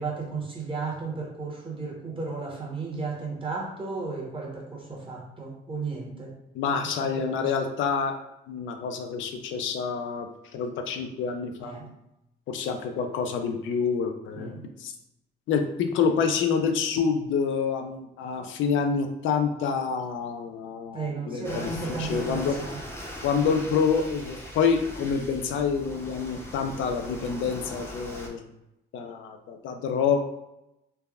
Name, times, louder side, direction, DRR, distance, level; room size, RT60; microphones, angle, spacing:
voice 1, 0.0-6.4 6.8-7.5 11.6-11.9 14.4-14.7 20.9-22.8 23.4-23.6, right 4 dB, 25° right, -2 dB, 0.9 m, -34 dB
voice 2, 6.5-8.2 8.5-11.8 12.5-14.9 15.5-21.7 22.0-22.6 23.2-28.5 28.9-30.2, left 6 dB, 75° left, 6 dB, 0.4 m, -27 dB
sound 1, 21.4-28.3, equal, 10° left, 0.6 m, -40 dB
3.3 x 2.1 x 2.3 m, 0.89 s
cardioid pair, 90°, 20 cm